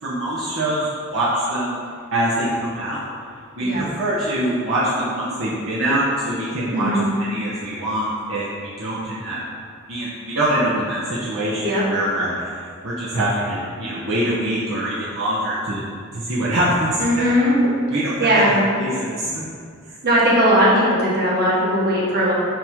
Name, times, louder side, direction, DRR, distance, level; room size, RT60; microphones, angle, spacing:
voice 1, 0.0-1.7 2.1-3.0 3.6-6.9 7.2-9.4 9.9-15.8 16.1-17.3 17.9-19.4, right 1 dB, 65° right, -9 dB, 1.0 m, -24 dB
voice 2, 17.0-17.6 18.2-18.6 20.0-22.3, equal, 50° right, -6 dB, 1.6 m, -18 dB
5.7 x 3.6 x 5.2 m, 2.2 s
head